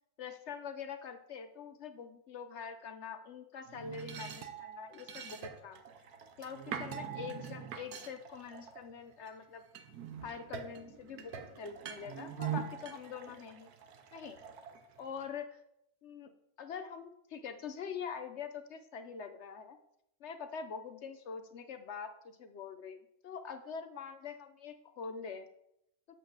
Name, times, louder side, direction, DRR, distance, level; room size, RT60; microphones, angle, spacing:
voice 1, 0.2-5.8 6.4-9.6 10.2-13.7 14.1-14.4 15.0-15.6 16.0-16.3 16.6-19.8 20.2-23.0 23.2-25.5, left 6 dB, 60° left, 7 dB, 0.8 m, -44 dB
sound 1, 3.7-9.3 9.7-15.3, right 8 dB, 90° right, 1.3 m, -44 dB
7.9 x 6.6 x 3.9 m, 0.77 s
omnidirectional pair, 1.6 m